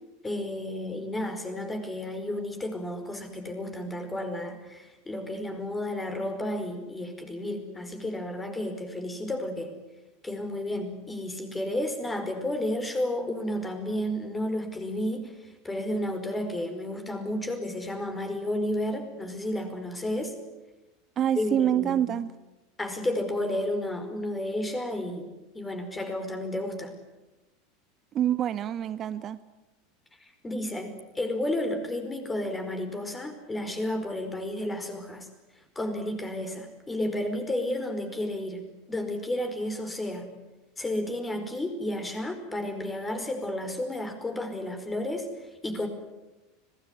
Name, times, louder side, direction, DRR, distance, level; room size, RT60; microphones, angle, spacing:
voice 1, 0.2-9.7 10.2-20.4 21.4-22.0 22.8-26.9 30.4-35.3 35.7-40.3 40.8-45.9, left 1 dB, 15° left, 6 dB, 5.0 m, -32 dB
voice 2, 21.2-22.3 28.1-29.4, right 10 dB, 35° right, 14 dB, 0.8 m, -26 dB
25.5 x 18.5 x 9.8 m, 1.1 s
figure-of-eight pair, 80°, 0 cm